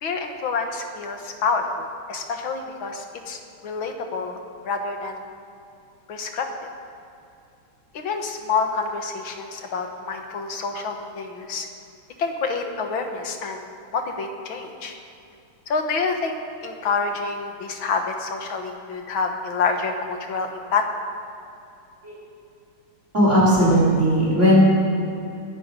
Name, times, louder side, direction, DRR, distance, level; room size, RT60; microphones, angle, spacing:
voice 1, 0.0-4.4 4.6-5.2 6.1-6.5 7.9-11.7 12.2-13.6 13.9-14.9 15.7-16.4 16.6-20.9, left 4 dB, 65° left, 4 dB, 2.0 m, -27 dB
voice 2, 23.1-24.6, equal, 30° right, -7 dB, 4.8 m, -17 dB
21.0 x 11.0 x 5.2 m, 2.7 s
omnidirectional pair, 2.4 m